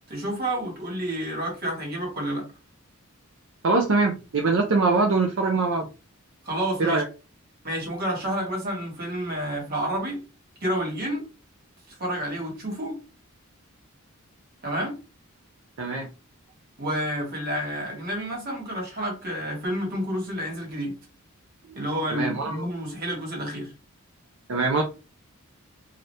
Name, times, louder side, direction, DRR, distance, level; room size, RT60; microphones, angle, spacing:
voice 1, 0.1-2.4 6.4-7.0 7.6-10.2 10.6-11.2 11.9-12.9 14.6-14.9 16.8-20.9 21.7-23.7, equal, 45° right, 1.4 m, -29 dB
voice 2, 3.6-5.9 6.8-7.0 15.8-16.1 22.1-22.7 24.5-24.8, right 3 dB, 65° right, 0.5 m, -23 dB
2.8 x 2.4 x 3.1 m
head